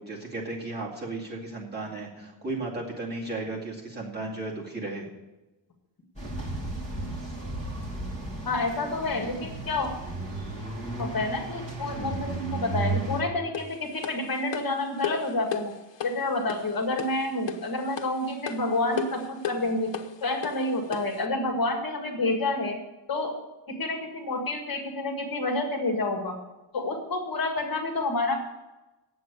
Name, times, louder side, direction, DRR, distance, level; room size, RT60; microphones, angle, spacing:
voice 1, 0.0-5.1, right 2 dB, 20° right, -3 dB, 2.4 m, -35 dB
sound 1, 6.2-13.2, right 2 dB, 15° left, 3.0 m, -34 dB
voice 2, 8.4-9.9 11.0-15.7 16.0-19.9 20.2-22.8 23.1-23.4 23.7-26.4 26.7-28.4, left 2 dB, 55° left, 3 dB, 1.8 m, -29 dB
sound 2, 13.5-21.2, left 7 dB, 80° left, 1.0 m, -36 dB
9.2 x 7.8 x 8.2 m, 1.0 s
wide cardioid pair, 175°, 43 cm